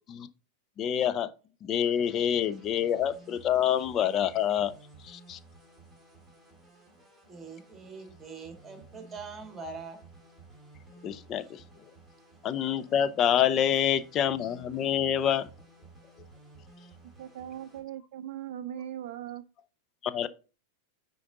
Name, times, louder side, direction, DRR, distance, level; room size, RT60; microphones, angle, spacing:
voice 1, 0.8-1.3 1.6-4.7 5.0-5.4 11.0-11.6 12.4-15.5 20.0-20.3, left 9 dB, 30° left, 0.5 m, -27 dB
sound 1, 1.8-17.8, right 2 dB, 5° left, 3.2 m, -55 dB
voice 2, 7.3-10.0, right 4 dB, 10° right, 1.9 m, -43 dB
voice 3, 17.0-19.4, right 11 dB, 50° right, 0.4 m, -39 dB
9.3 x 3.8 x 3.9 m
figure-of-eight pair, 90°, 0 cm